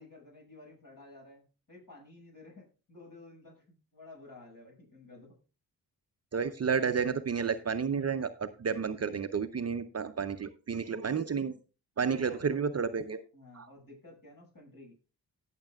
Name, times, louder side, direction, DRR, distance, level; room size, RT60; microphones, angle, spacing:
voice 1, 0.0-5.4 12.1-12.6 13.3-14.9, left 2 dB, 50° left, 0 dB, 6.4 m, -53 dB
voice 2, 6.3-11.5 12.0-13.2 13.5-13.7, right 6 dB, 35° right, 10 dB, 0.7 m, -31 dB
18.5 x 6.7 x 2.4 m, 0.33 s
cardioid pair, 60°, 42 cm